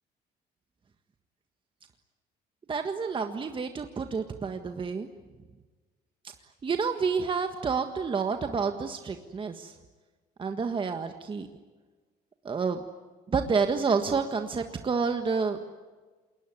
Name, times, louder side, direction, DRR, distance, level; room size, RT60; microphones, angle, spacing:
voice 1, 2.7-5.1 6.6-9.7 10.4-11.5 12.4-12.8 13.3-15.6, right 5 dB, 30° right, 6 dB, 1.6 m, -29 dB
27.5 x 21.5 x 9.7 m, 1.3 s
cardioid pair, 110°, 17 cm